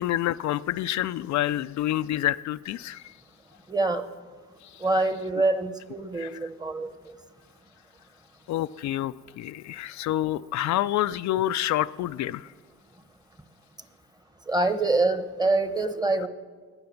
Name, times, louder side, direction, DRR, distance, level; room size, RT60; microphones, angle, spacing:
voice 1, 0.0-3.1 4.6-4.9 6.1-6.5 8.5-12.5, left 13 dB, 60° left, 12 dB, 0.4 m, -28 dB
voice 2, 3.7-4.0 4.8-7.1 14.5-16.3, right 2 dB, 15° right, 10 dB, 1.1 m, -25 dB
18.5 x 9.8 x 7.0 m, 1.5 s
cardioid pair, 105°, 31 cm